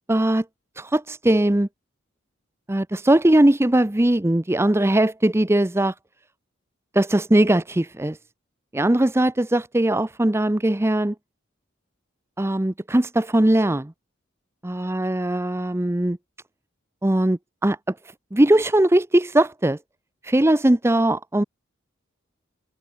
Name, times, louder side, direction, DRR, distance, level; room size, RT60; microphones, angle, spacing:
voice 1, 0.1-0.4 0.8-1.7 2.7-5.9 6.9-8.2 8.7-11.1 12.4-13.9 14.6-16.2 17.0-17.8 18.3-19.8 20.2-21.4, right 1 dB, 15° right, 0.6 m, -20 dB
head